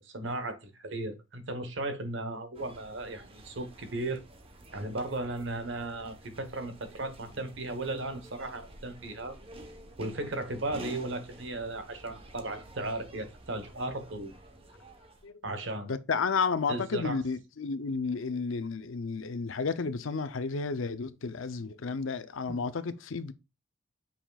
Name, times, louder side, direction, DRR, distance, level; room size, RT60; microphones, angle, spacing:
voice 1, 0.0-4.2 4.7-9.3 10.0-14.4 15.4-15.9 16.7-17.2 22.5-22.7, right 2 dB, 65° right, 1.1 m, -36 dB
sound 1, 2.5-15.3, right 2 dB, 30° right, 1.0 m, -50 dB
voice 2, 15.8-23.3, left 4 dB, 75° left, 0.6 m, -32 dB
7.0 x 5.8 x 2.4 m
head